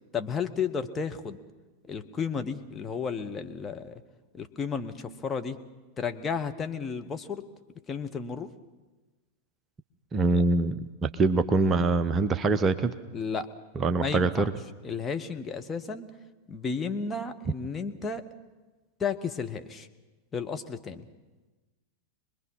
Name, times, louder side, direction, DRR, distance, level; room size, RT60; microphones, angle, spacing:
voice 1, 0.1-1.4 1.8-4.0 4.3-5.6 6.0-7.4 7.9-8.5 10.3-10.4 13.1-13.5 14.0-14.5 14.8-16.1 16.5-18.3 19.0-19.9 20.3-21.1, left 5 dB, 20° left, 6 dB, 1.2 m, -33 dB
voice 2, 10.1-12.9 13.8-14.5, right 3 dB, 25° right, 10 dB, 0.8 m, -24 dB
25.5 x 21.0 x 5.6 m, 1.2 s
figure-of-eight pair, 90°, 0 cm